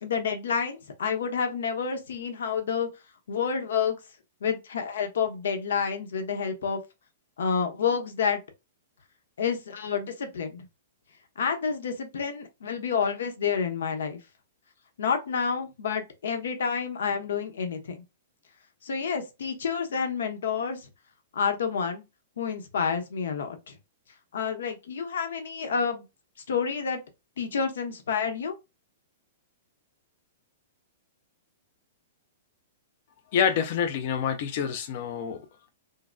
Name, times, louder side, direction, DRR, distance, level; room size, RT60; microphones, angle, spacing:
voice 1, 0.0-2.9 3.3-4.0 4.4-6.8 7.4-8.4 9.4-10.6 11.4-14.2 15.0-18.0 18.8-20.9 21.3-22.0 22.4-23.7 24.3-26.0 26.5-27.0 27.4-28.5, left 6 dB, 90° left, 0.9 m, -29 dB
voice 2, 33.3-35.7, left 7 dB, 35° left, 0.4 m, -27 dB
3.7 x 2.0 x 2.2 m
hypercardioid pair, 180°, 0 cm